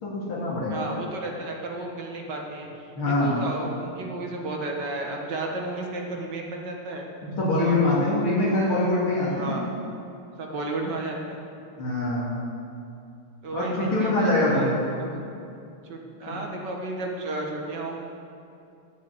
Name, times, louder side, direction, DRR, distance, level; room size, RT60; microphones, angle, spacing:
voice 1, 0.0-0.8 3.0-3.4 7.2-9.4 11.8-12.3 13.5-14.7 16.3-16.4, left 2 dB, 65° left, -7 dB, 3.2 m, -24 dB
voice 2, 0.7-2.7 3.0-7.1 7.5-7.8 8.2-8.4 9.3-9.7 10.4-11.4 13.4-15.2 15.8-18.0, right 2 dB, 55° right, 1 dB, 2.0 m, -33 dB
13.0 x 6.6 x 8.3 m, 2.6 s
omnidirectional pair, 2.4 m